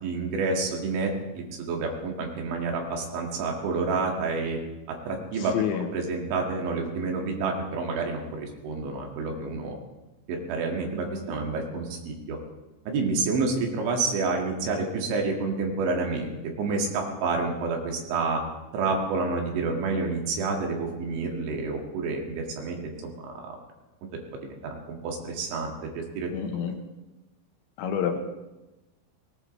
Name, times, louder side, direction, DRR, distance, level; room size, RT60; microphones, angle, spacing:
voice 1, 0.0-4.6 5.1-5.5 5.9-9.8 10.3-12.4 12.9-18.4 18.7-23.6 24.6-26.3, right 3 dB, 70° right, 1 dB, 4.3 m, -29 dB
voice 2, 5.5-5.9 26.3-26.7 27.8-28.3, left 7 dB, 75° left, 5 dB, 3.1 m, -28 dB
19.0 x 18.5 x 3.2 m, 1.0 s
omnidirectional pair, 5.7 m